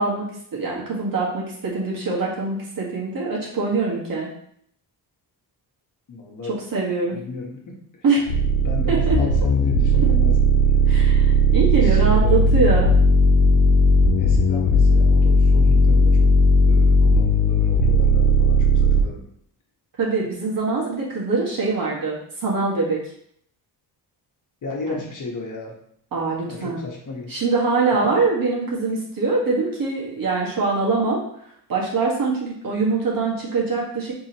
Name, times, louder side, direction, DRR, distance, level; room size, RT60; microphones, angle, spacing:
voice 1, 0.0-4.3 6.5-7.2 8.0-8.2 8.9-9.2 10.0-10.1 10.9-12.9 20.0-23.0 24.9-25.0 26.1-26.8 27.3-31.2 31.7-34.1, right 3 dB, 55° right, -4 dB, 1.7 m, -23 dB
voice 2, 6.1-6.6 7.1-8.0 8.6-10.5 11.8-12.4 14.2-16.3 16.7-19.3 20.2-20.3 24.6-25.8 26.5-27.4 28.0-28.1, left 3 dB, 45° left, -1 dB, 1.2 m, -34 dB
sound 1, 8.3-19.0, equal, 90° left, 1.0 m, -16 dB
5.0 x 3.6 x 3.0 m, 0.67 s
cardioid pair, 120°, 41 cm